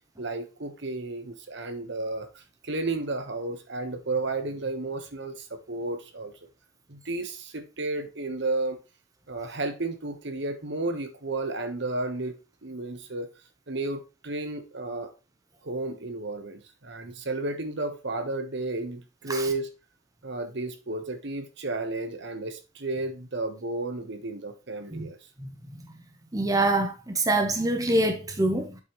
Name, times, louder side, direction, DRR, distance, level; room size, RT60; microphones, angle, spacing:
voice 1, 0.2-6.5 6.9-8.8 9.3-12.4 12.6-13.3 13.7-15.1 15.6-19.7 20.2-25.2, right 2 dB, 60° right, 1.3 m, -32 dB
voice 2, 26.3-28.8, right 2 dB, 20° right, 0.9 m, -25 dB
8.2 x 5.8 x 3.2 m
head